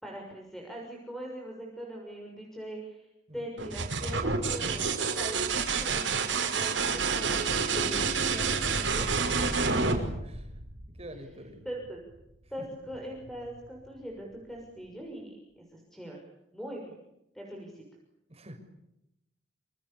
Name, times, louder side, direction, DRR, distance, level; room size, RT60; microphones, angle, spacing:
voice 1, 0.0-9.5 11.6-12.0 12.5-16.2 16.5-16.9 17.3-17.8, right 1 dB, ahead, 0 dB, 6.5 m, -41 dB
sound 1, 3.6-11.2 12.9-13.5, right 4 dB, 80° right, 6.0 m, -29 dB
voice 2, 9.6-10.5 10.9-11.6 12.6-12.7 18.3-18.6, right 1 dB, 35° right, 6 dB, 6.4 m, -45 dB
28.5 x 28.0 x 7.1 m, 0.85 s
head